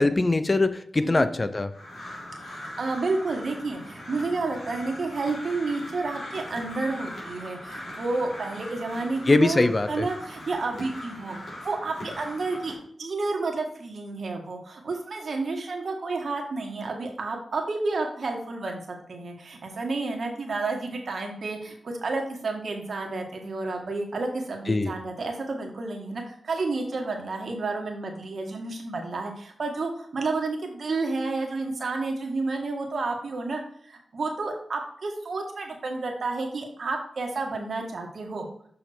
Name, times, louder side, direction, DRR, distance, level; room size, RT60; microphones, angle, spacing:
voice 1, 0.0-1.7 9.3-10.1 24.7-24.9, left 2 dB, 35° left, 11 dB, 0.7 m, -22 dB
Crow, 1.7-12.8, left 1 dB, 75° left, 3.6 m, -40 dB
voice 2, 2.4-11.4 11.6-12.7 13.0-38.4, right 3 dB, 70° right, 2 dB, 1.7 m, -30 dB
6.8 x 5.6 x 4.6 m, 0.64 s
cardioid pair, 50°, 0 cm